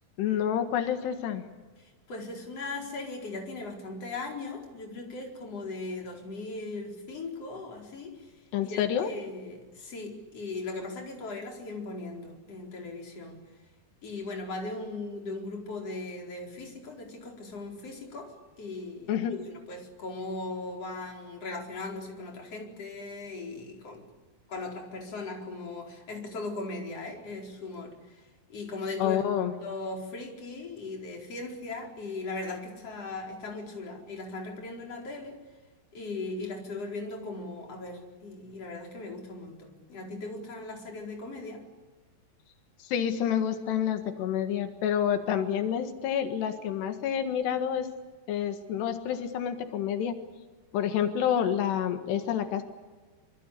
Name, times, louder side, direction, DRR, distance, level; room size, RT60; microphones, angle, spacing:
voice 1, 0.2-1.5 8.5-9.1 19.1-19.3 29.0-29.5 42.8-47.9 48.3-50.2 50.7-52.6, left 9 dB, 90° left, 7 dB, 3.8 m, -28 dB
voice 2, 1.8-8.3 8.6-13.4 14.0-24.1 24.5-29.2 29.6-35.4 35.9-41.6, left 3 dB, 35° left, 1 dB, 5.3 m, -38 dB
26.5 x 25.5 x 8.4 m, 1.3 s
omnidirectional pair, 4.7 m